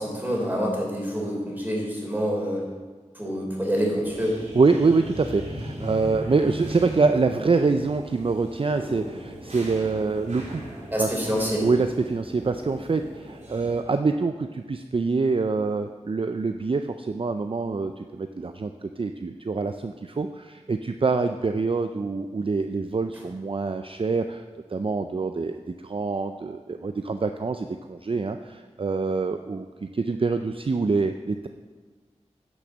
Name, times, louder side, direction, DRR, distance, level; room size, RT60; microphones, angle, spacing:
voice 1, 0.0-2.6 3.2-4.4 10.9-11.6, equal, 15° right, -2 dB, 3.7 m, -27 dB
sound 1, 4.0-13.8, right 1 dB, 80° right, 3.5 m, -38 dB
voice 2, 4.5-10.6 11.0-11.1 11.6-24.4 24.7-25.5 25.8-29.7 29.9-31.5, right 4 dB, 50° right, 7 dB, 0.5 m, -25 dB
10.5 x 6.3 x 6.3 m, 1.4 s
wide cardioid pair, 45°, 12 cm